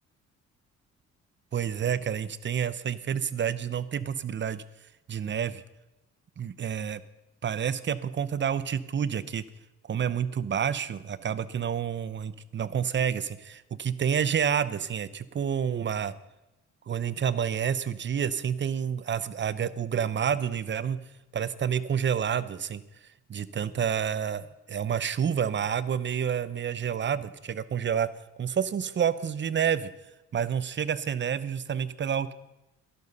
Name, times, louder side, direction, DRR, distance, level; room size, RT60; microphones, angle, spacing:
voice 1, 1.5-4.6 5.1-5.6 6.4-7.0 7.4-9.4 9.9-16.1 16.9-21.0 21.3-22.8 23.3-28.1 28.4-29.9 30.3-32.3, right 8 dB, 40° right, 16 dB, 0.7 m, -29 dB
12.0 x 12.0 x 5.5 m, 0.95 s
cardioid pair, 90°, 30 cm